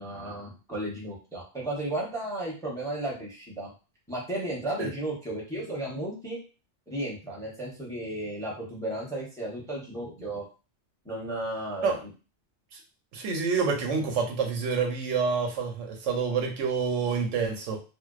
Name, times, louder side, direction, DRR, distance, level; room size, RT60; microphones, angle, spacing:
voice 1, 0.0-3.7 4.1-6.4 6.9-10.4 11.0-12.1, right 1 dB, 5° left, -3 dB, 0.5 m, -34 dB
voice 2, 13.1-17.8, right 5 dB, 90° right, 3 dB, 1.0 m, -27 dB
2.6 x 2.1 x 2.3 m, 0.33 s
omnidirectional pair, 1.2 m